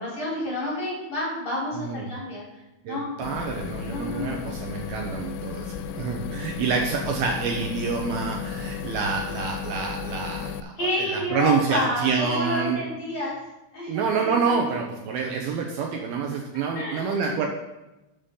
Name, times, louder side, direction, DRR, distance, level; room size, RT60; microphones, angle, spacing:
voice 1, 0.0-2.4 2.8-3.1 3.8-4.5 6.5-6.9 10.8-13.4 13.7-14.7 16.7-17.1, left 1 dB, 30° left, -7 dB, 4.5 m, -30 dB
voice 2, 1.7-2.1 2.8-12.8 13.9-17.5, right 5 dB, 75° right, 1 dB, 2.6 m, -27 dB
sound 1, 3.2-10.6, left 7 dB, 90° left, 2.7 m, -34 dB
12.0 x 7.1 x 3.8 m, 0.96 s
omnidirectional pair, 4.8 m